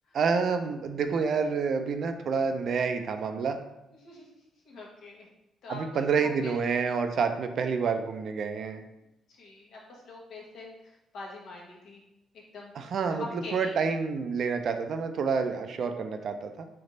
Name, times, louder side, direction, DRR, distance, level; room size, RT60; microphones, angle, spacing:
voice 1, 0.1-3.6 5.7-8.8 12.8-16.6, right 5 dB, 60° right, 7 dB, 0.4 m, -28 dB
voice 2, 4.6-5.3 5.6-6.8 9.3-10.7 11.1-12.0 12.5-12.7 13.4-13.8, left 2 dB, 75° left, -3 dB, 1.1 m, -44 dB
3.3 x 3.1 x 3.8 m, 0.91 s
cardioid pair, 90°, 0 cm